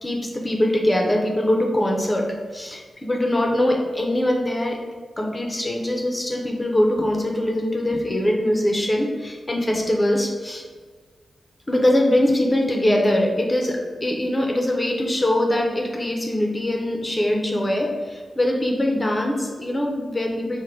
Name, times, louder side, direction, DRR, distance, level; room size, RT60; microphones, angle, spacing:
voice 1, 0.0-4.8 5.2-10.6 11.7-20.6, left 1 dB, 20° left, 1 dB, 0.6 m, -22 dB
4.8 x 2.1 x 4.5 m, 1.5 s
wide cardioid pair, 115°, 0 cm